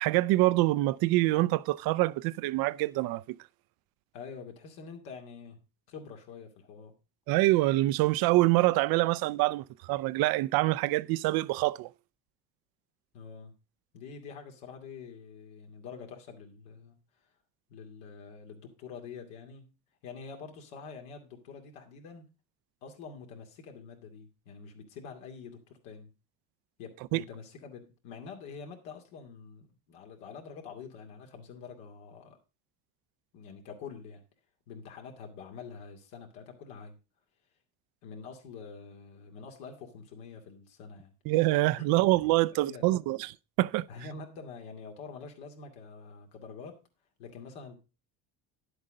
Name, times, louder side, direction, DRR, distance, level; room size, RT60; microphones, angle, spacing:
voice 1, 0.0-3.4 7.3-11.9 27.1-27.2 41.3-43.3 43.6-43.9, right 19 dB, 65° right, 0.5 m, -25 dB
voice 2, 4.1-5.6 5.9-6.9 13.1-13.5 13.9-17.0 17.7-19.7 20.0-22.3 22.8-26.1 26.8-32.4 33.3-34.2 34.7-37.0 38.0-41.1 41.8-41.9 42.5-43.0 43.9-46.8 47.2-47.8, left 5 dB, 85° left, 2.5 m, -46 dB
10.0 x 8.0 x 3.7 m
supercardioid pair, 95°, 40 cm